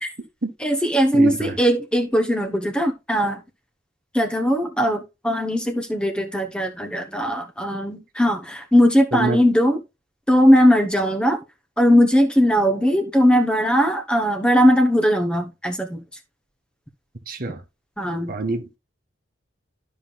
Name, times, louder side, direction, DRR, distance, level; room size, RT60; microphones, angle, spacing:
voice 1, 0.6-3.4 4.1-9.8 10.3-11.4 11.8-16.0 18.0-18.3, equal, 5° left, 0.9 m, -19 dB
voice 2, 1.1-1.6 9.1-9.5 17.3-17.6 18.3-18.8, right 3 dB, 45° right, 1.2 m, -26 dB
12.0 x 5.3 x 2.4 m
head